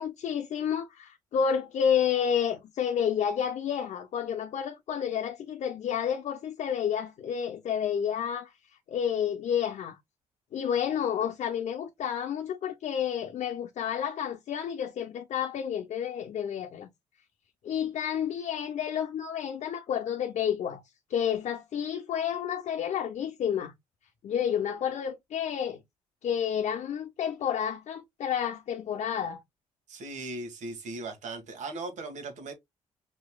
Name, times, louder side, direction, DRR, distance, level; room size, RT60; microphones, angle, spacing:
voice 1, 0.0-8.5 8.9-10.0 10.5-16.9 17.6-20.8 21.1-23.7 24.2-25.8 26.2-29.4, left 8 dB, 65° left, 0.7 m, -30 dB
voice 2, 29.9-32.5, right 2 dB, 70° right, 1.7 m, -38 dB
5.3 x 3.2 x 2.2 m
supercardioid pair, 65°, 13 cm